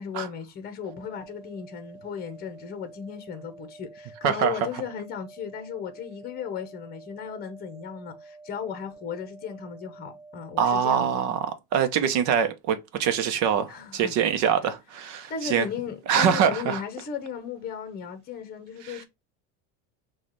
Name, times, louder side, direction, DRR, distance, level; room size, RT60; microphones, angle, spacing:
voice 1, 0.0-11.2 13.7-14.1 15.3-19.0, left 7 dB, 30° left, 0.9 m, -36 dB
sound 1, 0.8-10.8, right 3 dB, 5° left, 2.9 m, -49 dB
voice 2, 4.2-4.6 10.6-11.5 11.7-15.6 16.1-16.8 18.8-19.0, right 8 dB, 55° right, 0.8 m, -24 dB
6.2 x 2.4 x 3.1 m
cardioid pair, 145°, 34 cm